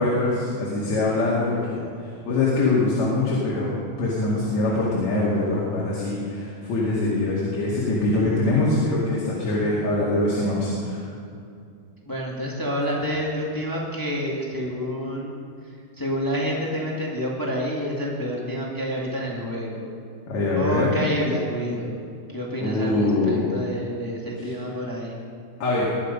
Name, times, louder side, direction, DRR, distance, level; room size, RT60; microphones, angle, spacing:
voice 1, 0.0-11.0 20.3-21.0 22.6-23.5 24.4-24.5 25.6-25.9, left 2 dB, 50° left, -6 dB, 3.3 m, -23 dB
voice 2, 12.0-19.9 20.5-22.0 22.3-25.2, equal, 20° left, -3 dB, 0.5 m, -28 dB
21.5 x 11.0 x 5.3 m, 2.4 s
omnidirectional pair, 4.6 m